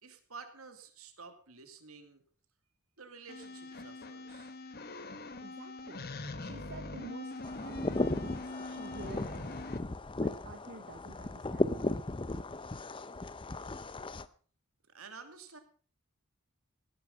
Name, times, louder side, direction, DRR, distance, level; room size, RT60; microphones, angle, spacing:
voice 1, 0.0-2.2 3.0-4.5 14.9-15.6, right 5 dB, 75° right, 8 dB, 2.6 m, -51 dB
sound 1, 3.3-9.8, left 2 dB, 45° left, 1.4 m, -43 dB
voice 2, 5.4-6.1 6.4-9.5 10.2-12.0, right 2 dB, 55° right, 7 dB, 1.2 m, -50 dB
sound 2, 7.4-14.3, left 2 dB, 25° left, 0.6 m, -36 dB
17.0 x 11.0 x 5.4 m, 0.42 s
head